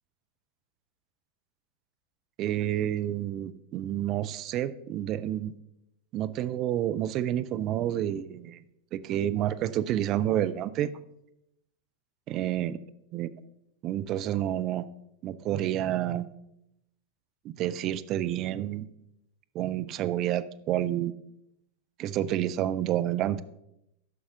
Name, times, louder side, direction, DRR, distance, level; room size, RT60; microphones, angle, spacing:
voice 1, 2.4-5.5 6.1-8.6 8.9-10.9 12.3-12.8 13.1-13.3 13.8-14.9 15.2-16.3 17.4-18.9 19.5-21.1 22.0-23.4, right 12 dB, 35° right, 13 dB, 0.4 m, -29 dB
9.3 x 6.0 x 3.6 m, 0.81 s
figure-of-eight pair, 90°, 0 cm